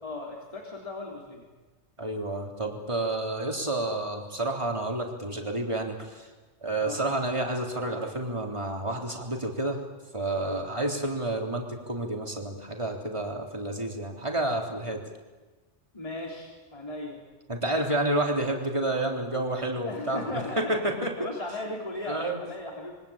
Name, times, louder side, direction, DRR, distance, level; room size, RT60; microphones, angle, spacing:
voice 1, 0.0-1.5 6.8-7.0 10.4-10.6 15.9-17.2 19.9-20.8 21.2-22.9, left 2 dB, 30° left, -1 dB, 3.7 m, -37 dB
voice 2, 2.0-6.3 6.6-9.8 10.1-15.0 17.5-21.1 22.1-22.4, right 1 dB, 25° right, 2 dB, 3.7 m, -30 dB
27.0 x 24.0 x 8.8 m, 1.3 s
omnidirectional pair, 1.2 m